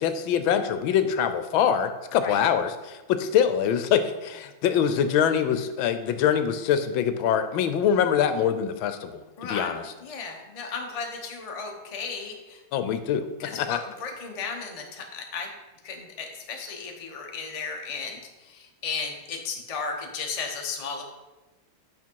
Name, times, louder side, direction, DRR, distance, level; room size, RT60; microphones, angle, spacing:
voice 1, 0.0-9.8 12.7-13.2 13.6-13.8, left 8 dB, 80° left, 10 dB, 1.4 m, -24 dB
voice 2, 9.4-12.6 13.4-15.5 15.8-21.0, left 5 dB, 30° left, 2 dB, 0.6 m, -35 dB
8.4 x 5.8 x 4.6 m, 1.1 s
omnidirectional pair, 2.2 m